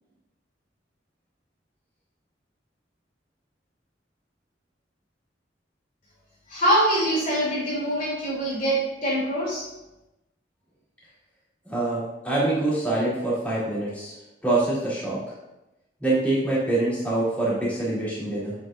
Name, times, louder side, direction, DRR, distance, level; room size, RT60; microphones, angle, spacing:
voice 1, 6.5-9.7, right 1 dB, 45° left, -6 dB, 2.9 m, -24 dB
voice 2, 11.6-14.1 14.4-15.2 16.0-18.5, right 2 dB, 10° left, -9 dB, 2.9 m, -25 dB
8.2 x 7.4 x 2.6 m, 0.96 s
head